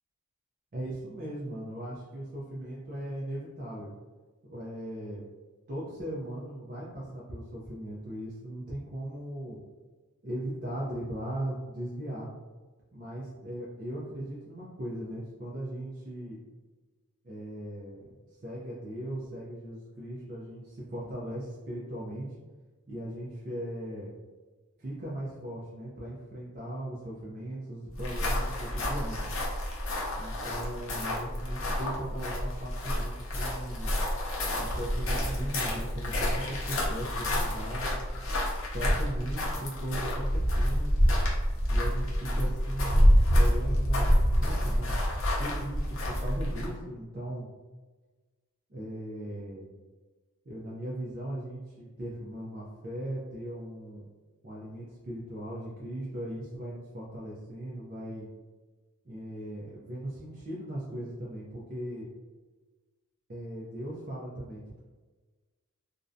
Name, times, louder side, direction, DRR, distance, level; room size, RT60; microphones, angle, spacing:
voice 1, 0.7-3.9 4.5-5.2 5.7-9.6 10.2-12.3 12.9-16.4 17.2-18.1 18.4-22.3 22.9-24.1 24.8-29.3 30.2-33.9 34.6-37.9 38.7-41.0 41.7-44.1 44.3-45.0 45.4-47.5 48.7-49.7 50.5-54.0 54.4-58.3 59.0-62.1 63.3-64.8, right 1 dB, 40° right, -6 dB, 0.4 m, -38 dB
sound 1, 27.9-46.8, equal, 60° left, 0.6 m, -28 dB
2.5 x 2.1 x 2.5 m, 1.3 s
head